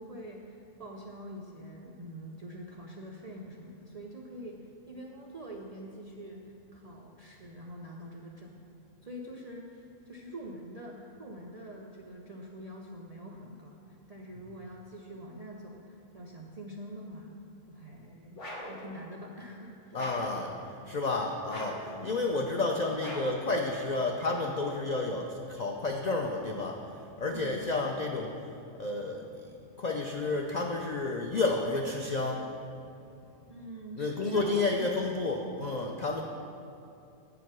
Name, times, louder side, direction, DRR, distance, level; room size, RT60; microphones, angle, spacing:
voice 1, 0.0-8.7 9.0-17.3 17.7-20.1 21.9-22.1 27.3-27.6 33.5-35.1, equal, 60° right, -1 dB, 0.4 m, -45 dB
sound 1, 18.4-18.8 19.9-20.4 21.5-21.9 23.0-23.5, left 1 dB, 65° left, 1.6 m, -41 dB
voice 2, 19.9-28.5 28.7-32.5 34.0-36.2, left 3 dB, 80° left, 1 dB, 0.3 m, -31 dB
7.9 x 4.9 x 6.0 m, 2.7 s
omnidirectional pair, 1.4 m